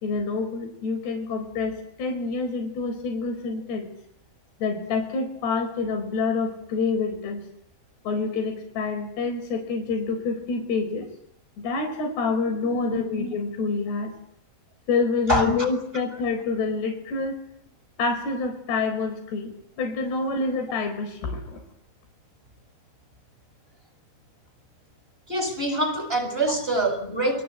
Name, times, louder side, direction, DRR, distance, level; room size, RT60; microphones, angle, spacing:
voice 1, 0.0-3.9 4.6-7.4 8.0-11.1 11.6-14.1 14.9-17.4 18.0-19.5 19.8-21.6, left 4 dB, 85° left, 5 dB, 6.5 m, -27 dB
voice 2, 12.9-13.3 15.3-15.6 25.3-27.4, right 1 dB, 15° right, 6 dB, 6.6 m, -25 dB
30.0 x 23.5 x 8.0 m, 0.74 s
omnidirectional pair, 4.6 m